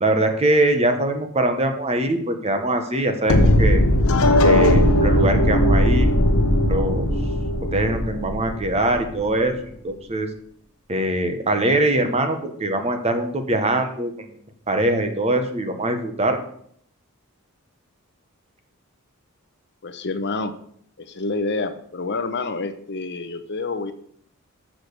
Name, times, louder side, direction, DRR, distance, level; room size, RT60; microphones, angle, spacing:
voice 1, 0.0-3.8 4.4-6.1 6.4-7.1 7.7-10.3 10.9-14.3 14.7-16.4, right 1 dB, 30° right, 6 dB, 1.1 m, -22 dB
sound 1, 3.3-9.3, left 1 dB, 80° left, 0.9 m, -18 dB
voice 2, 19.8-20.5 21.0-23.9, left 3 dB, 50° left, 8 dB, 0.8 m, -28 dB
6.7 x 6.1 x 6.7 m, 0.65 s
head